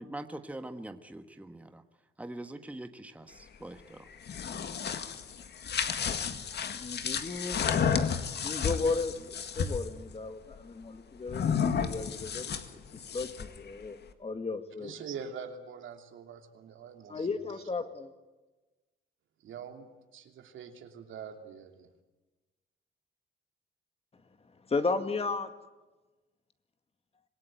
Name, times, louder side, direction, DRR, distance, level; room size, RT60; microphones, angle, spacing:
voice 1, 0.0-1.8 2.2-4.1, right 1 dB, 5° right, 8 dB, 1.3 m, -43 dB
sound 1, 4.1-9.9 11.3-13.6, left 7 dB, 60° left, 2.0 m, -32 dB
voice 2, 6.7-7.6 8.4-14.9 17.1-18.1 24.5-25.5, left 4 dB, 30° left, 8 dB, 2.1 m, -34 dB
voice 3, 14.8-17.5 19.4-21.9, right 6 dB, 75° right, 5 dB, 2.9 m, -44 dB
26.0 x 18.0 x 9.1 m, 1.2 s
cardioid pair, 90°, 20 cm